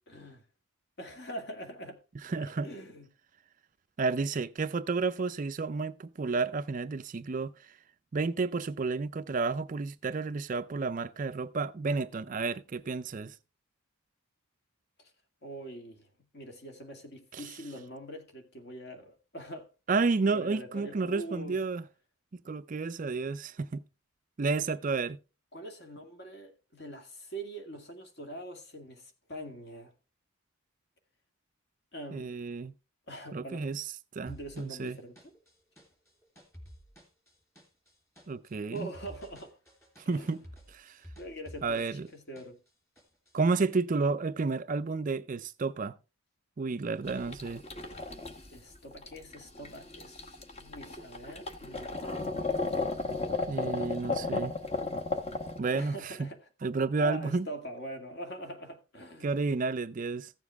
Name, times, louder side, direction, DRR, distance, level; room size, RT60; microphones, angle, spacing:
voice 1, 0.1-0.4 1.0-3.1 15.0-15.1 15.4-19.7 20.3-21.6 25.5-29.9 31.9-32.3 33.1-33.7 34.3-35.3 38.7-39.6 40.1-40.4 41.2-42.6 48.5-52.1 55.7-56.5 57.0-59.3, right 1 dB, 50° left, 2.0 m, -44 dB
voice 2, 2.2-2.7 4.0-7.5 8.1-13.4 17.3-17.4 19.9-21.8 22.5-23.8 24.4-25.2 32.1-32.7 33.3-33.8 34.1-35.0 38.3-38.9 40.1-40.4 40.7-41.0 41.6-42.1 43.3-45.9 46.6-47.6 53.5-54.5 55.6-56.3 56.6-57.5 59.2-60.3, right 4 dB, 35° right, 0.4 m, -31 dB
sound 1, 34.3-42.7 42.9-43.8, equal, 10° left, 3.0 m, -52 dB
sound 2, 47.1-55.6, left 3 dB, 30° left, 1.1 m, -34 dB
15.0 x 7.2 x 3.4 m
head